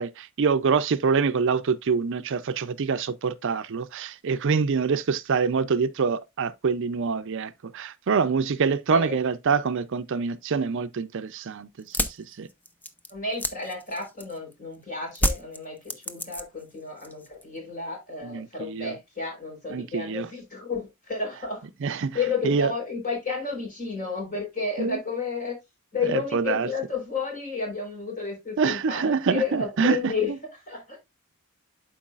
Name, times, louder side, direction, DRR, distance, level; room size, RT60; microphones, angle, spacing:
voice 1, 0.0-11.7 12.4-12.5 18.2-18.9 19.7-20.3 21.8-22.2 22.4-22.7 24.8-25.0 26.1-26.7 28.6-30.1, right 5 dB, 60° right, 0.5 m, -25 dB
sound 1, 11.8-14.5 15.1-16.7 17.0-17.6, left 1 dB, 10° left, 0.5 m, -29 dB
voice 2, 13.1-21.7 22.1-25.6 25.9-31.0, left 4 dB, 40° left, 4.1 m, -32 dB
11.5 x 4.7 x 2.4 m
head